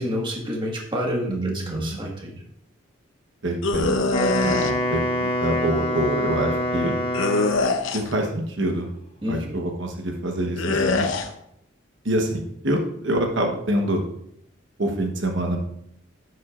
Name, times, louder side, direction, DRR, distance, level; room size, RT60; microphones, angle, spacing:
voice 1, 0.0-2.4 9.2-9.6, equal, 25° right, -1 dB, 1.5 m, -29 dB
voice 2, 1.3-2.0 3.4-3.9 4.4-6.9 7.9-8.9 9.3-11.1 12.0-14.0 14.8-15.6, right 1 dB, 70° right, 3 dB, 1.1 m, -26 dB
sound 1, 3.6-4.7 7.1-8.2 10.6-11.3, left 2 dB, 75° left, 0.8 m, -23 dB
Wind instrument woodwind instrument, 4.0-7.8, left 1 dB, 25° left, 1.0 m, -25 dB
11.0 x 8.0 x 2.5 m, 0.73 s
head